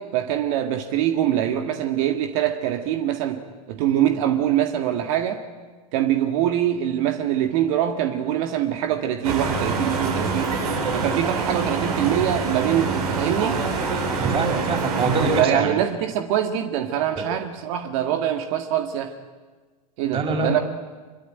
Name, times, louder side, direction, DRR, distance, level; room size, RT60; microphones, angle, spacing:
voice 1, 0.0-3.4 3.7-5.4 5.9-10.6 10.9-13.6 15.4-19.1 20.0-20.6, right 11 dB, 55° right, 6 dB, 1.9 m, -23 dB
sound 1, 9.2-15.4, right 4 dB, 80° right, 6.1 m, -25 dB
voice 2, 14.2-15.8 17.2-17.3 20.0-20.6, right 4 dB, 30° right, 3 dB, 6.0 m, -24 dB
24.0 x 23.5 x 9.2 m, 1.4 s
hypercardioid pair, 105°, 20 cm